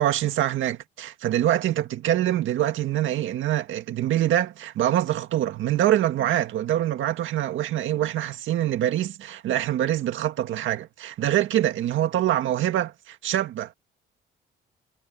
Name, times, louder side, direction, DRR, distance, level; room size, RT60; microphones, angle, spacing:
voice 1, 0.0-13.7, right 12 dB, 80° right, 1.8 m, -25 dB
cardioid pair, 90°, 20 cm